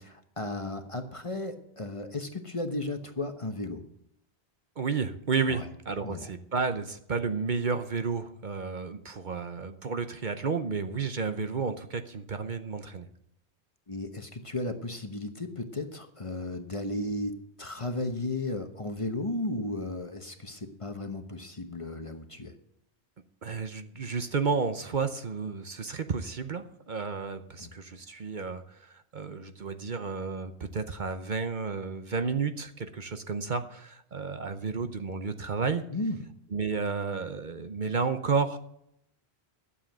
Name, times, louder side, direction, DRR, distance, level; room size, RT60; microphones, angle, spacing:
voice 1, 0.0-3.8 5.5-5.7 6.0-6.3 13.9-22.5 27.6-27.7 35.9-36.3, left 2 dB, 30° left, 7 dB, 1.0 m, -34 dB
voice 2, 4.8-13.1 23.4-35.8 36.5-38.6, right 5 dB, 50° right, 9 dB, 0.9 m, -32 dB
12.0 x 7.5 x 7.7 m, 0.76 s
omnidirectional pair, 1.1 m